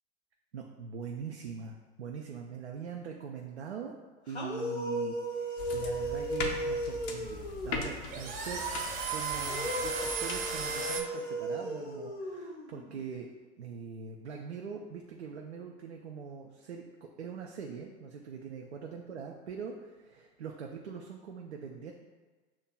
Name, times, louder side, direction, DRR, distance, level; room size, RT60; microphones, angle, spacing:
voice 1, 0.5-3.9 4.3-8.6 9.1-13.3 13.6-21.9, right 6 dB, 85° right, 1 dB, 0.5 m, -42 dB
sound 1, 4.3-8.0 9.4-13.0, right 1 dB, 85° left, 0.8 m, -36 dB
sound 2, 5.6-10.7, left 4 dB, 55° left, 0.7 m, -41 dB
sound 3, 6.1-11.0, right 5 dB, 40° right, 0.8 m, -36 dB
7.1 x 2.8 x 2.2 m, 1.3 s
figure-of-eight pair, 80°, 32 cm